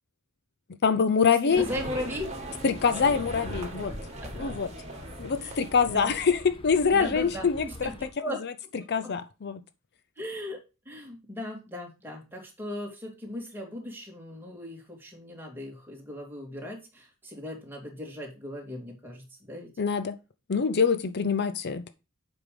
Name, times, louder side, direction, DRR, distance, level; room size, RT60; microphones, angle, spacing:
voice 1, 0.8-1.7 2.6-3.9 4.4-4.7 5.2-7.6 8.9-9.6 19.8-20.2 20.5-21.9, left 5 dB, 50° left, 0.5 m, -24 dB
voice 2, 1.4-2.3 4.4-4.5 5.4-5.6 5.9-6.1 6.9-8.4 9.0-9.1 10.2-10.6 10.9-19.7, left 1 dB, 10° right, 2.6 m, -38 dB
sound 1, 1.5-8.1, left 1 dB, 25° left, 1.3 m, -42 dB
sound 2, 1.5-6.4, right 2 dB, 30° right, 2.0 m, -41 dB
8.0 x 5.3 x 5.1 m
head